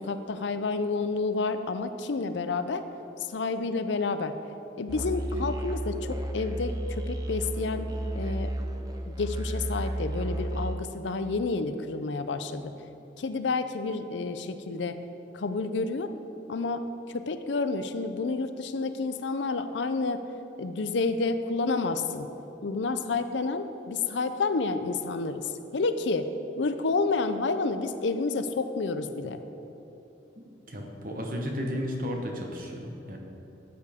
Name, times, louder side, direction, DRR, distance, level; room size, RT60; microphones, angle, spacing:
voice 1, 0.0-2.8 3.3-4.3 4.8-7.9 8.2-8.5 9.1-12.7 13.2-15.0 15.3-16.1 16.5-16.8 17.1-20.2 20.6-22.3 22.6-26.3 26.6-29.4, left 3 dB, 75° left, 10 dB, 0.5 m, -29 dB
Musical instrument, 4.9-10.8, right 1 dB, 20° right, 0.6 m, -32 dB
voice 2, 30.7-33.2, equal, 45° right, 1 dB, 1.2 m, -33 dB
12.5 x 8.6 x 3.6 m, 2.9 s
head